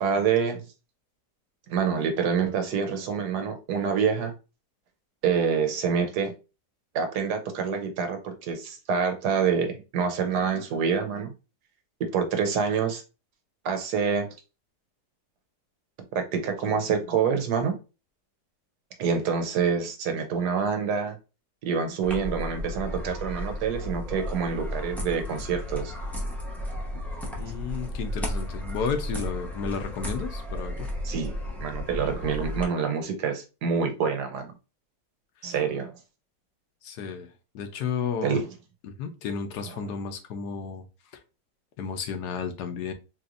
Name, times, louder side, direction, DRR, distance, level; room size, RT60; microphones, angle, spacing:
voice 1, 0.0-0.6 1.7-4.3 5.2-6.3 6.9-11.3 12.0-13.0 13.6-14.3 16.1-17.8 19.0-21.2 21.6-25.9 31.0-34.5 35.4-35.9 38.2-38.4, right 6 dB, 80° right, 1.4 m, -26 dB
sound 1, 22.0-32.6, left 1 dB, ahead, 0.4 m, -34 dB
voice 2, 27.4-30.9 36.8-38.4 38.8-40.8 41.8-42.9, left 6 dB, 75° left, 1.2 m, -32 dB
4.2 x 3.1 x 2.5 m
omnidirectional pair, 1.8 m